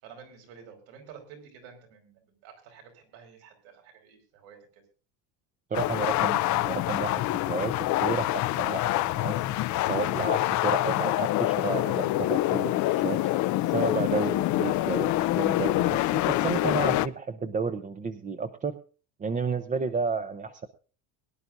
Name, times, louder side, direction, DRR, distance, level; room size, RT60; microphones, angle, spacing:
voice 1, 0.0-4.8, right 7 dB, 75° right, 3 dB, 5.3 m, -50 dB
sound 1, 5.7-17.1, left 16 dB, 45° left, 0.5 m, -26 dB
voice 2, 5.7-9.4 9.8-13.2 13.7-18.7 19.2-20.7, right 5 dB, 20° right, 8 dB, 0.6 m, -32 dB
22.5 x 11.0 x 2.6 m, 0.37 s
cardioid pair, 150°, 42 cm